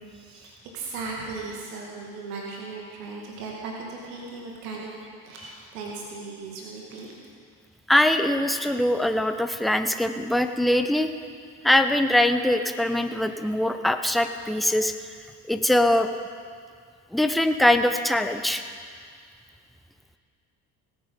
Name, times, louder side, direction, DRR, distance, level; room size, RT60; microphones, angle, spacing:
voice 1, 0.1-4.9 5.2-7.1, right 3 dB, 70° right, -1 dB, 2.0 m, -37 dB
voice 2, 7.9-11.1 11.6-14.9 15.5-16.1 17.1-18.6, left 1 dB, ahead, 8 dB, 0.7 m, -22 dB
18.0 x 8.2 x 5.3 m, 2.1 s
figure-of-eight pair, 60°, 48 cm